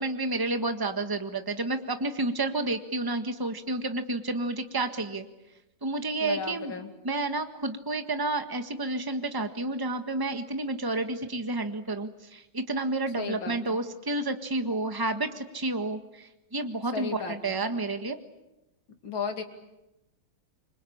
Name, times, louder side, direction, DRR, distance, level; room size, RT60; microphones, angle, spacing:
voice 1, 0.0-5.2 5.8-6.8 7.0-18.2, right 2 dB, 10° right, 7 dB, 1.4 m, -30 dB
voice 2, 6.2-6.9 13.2-13.8 16.9-17.6 19.0-19.4, left 5 dB, 85° left, 5 dB, 3.4 m, -34 dB
27.5 x 24.5 x 8.7 m, 0.96 s
omnidirectional pair, 2.1 m